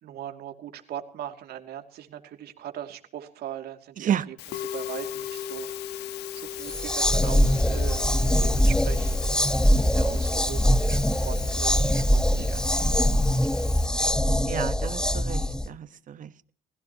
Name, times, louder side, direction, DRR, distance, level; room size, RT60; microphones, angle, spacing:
voice 1, 0.0-5.7 6.1-8.1 8.4-9.2 9.7-13.7, right 11 dB, 70° right, 6 dB, 2.6 m, -40 dB
Musical instrument, 4.4-13.9, left 11 dB, 80° left, 1.3 m, -39 dB
sound 1, 6.6-15.7, equal, 5° left, 0.8 m, -23 dB
voice 2, 14.5-16.3, right 9 dB, 50° right, 13 dB, 1.2 m, -31 dB
29.5 x 16.0 x 3.0 m, 0.42 s
cardioid pair, 110°, 17 cm